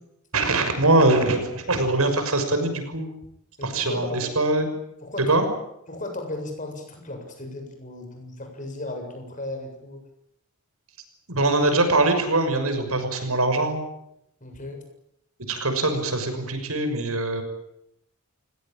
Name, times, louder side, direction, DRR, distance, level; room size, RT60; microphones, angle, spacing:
voice 1, 0.3-3.1 3.6-4.7 5.3-5.4 11.3-13.8 15.5-17.4, right 2 dB, 80° right, 7 dB, 6.2 m, -22 dB
voice 2, 3.6-4.4 5.0-5.4 5.9-10.0 14.4-14.8, left 2 dB, 35° left, 4 dB, 7.5 m, -35 dB
29.0 x 18.0 x 8.9 m, 0.77 s
head